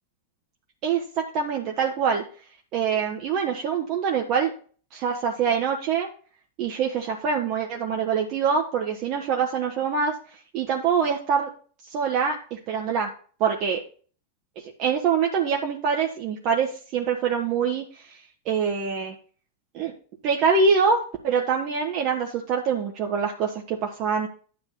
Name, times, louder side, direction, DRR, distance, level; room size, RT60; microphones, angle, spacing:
voice 1, 0.8-2.2 2.7-4.5 4.9-6.1 6.6-10.1 10.5-11.5 11.8-13.1 13.4-13.8 14.6-18.2 18.4-19.1 19.7-19.9 20.2-24.3, right 6 dB, 40° right, 1 dB, 1.3 m, -25 dB
9.8 x 3.4 x 7.0 m, 0.42 s
figure-of-eight pair, 90°, 0 cm